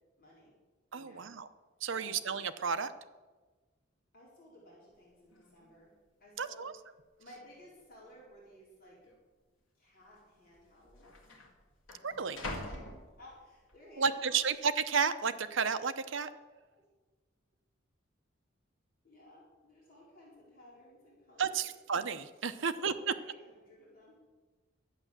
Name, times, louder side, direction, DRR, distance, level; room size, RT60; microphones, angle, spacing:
voice 1, 0.2-0.6 0.9-1.3 1.9-2.1 4.1-5.9 6.2-6.7 7.2-9.0 9.7-11.1 12.6-12.9 13.2-14.4 16.7-16.9 19.0-21.7 22.6-24.2, left 1 dB, 45° left, -5 dB, 4.3 m, -57 dB
voice 2, 0.9-1.5 1.8-2.9 6.4-6.7 12.0-12.4 14.0-16.3 21.4-22.9, right 6 dB, 65° right, 9 dB, 0.7 m, -32 dB
sound 1, 5.0-5.1 5.3-5.7 6.4-6.5 7.3-7.8 8.1-8.2 9.0-9.2 10.2-10.3 10.5-13.7 14.2-14.7, left 1 dB, 70° left, 2.1 m, -46 dB
11.5 x 8.9 x 7.3 m, 1.3 s
head